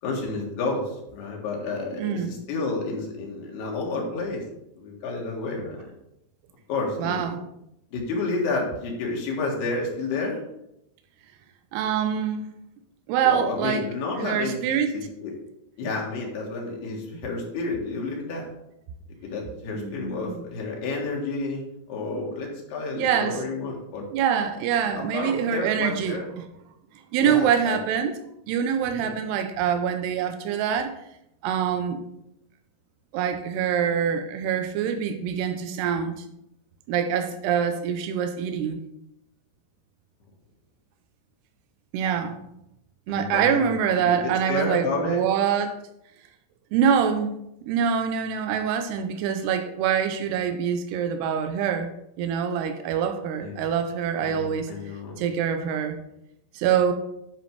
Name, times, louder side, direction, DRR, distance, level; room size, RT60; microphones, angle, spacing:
voice 1, 0.0-4.4 4.8-5.9 6.7-7.2 7.9-10.4 13.2-15.3 15.8-18.5 19.2-24.1 25.0-26.3 27.2-27.8 28.8-29.2 43.1-45.3 53.4-53.6 54.2-55.2, left 3 dB, 75° left, -1 dB, 3.7 m, -30 dB
voice 2, 2.0-2.4 7.0-7.4 11.7-12.5 13.1-13.8 14.2-14.9 19.7-20.4 23.0-23.4 24.1-26.2 27.1-28.1 28.5-30.9 31.4-32.0 33.1-36.2 36.9-38.8 41.9-42.4 43.1-45.7 46.7-47.4 47.7-51.9 52.2-54.7 55.2-56.0 56.5-56.9, right 8 dB, 90° right, 6 dB, 2.8 m, -25 dB
10.5 x 5.2 x 4.7 m, 0.82 s
omnidirectional pair, 4.8 m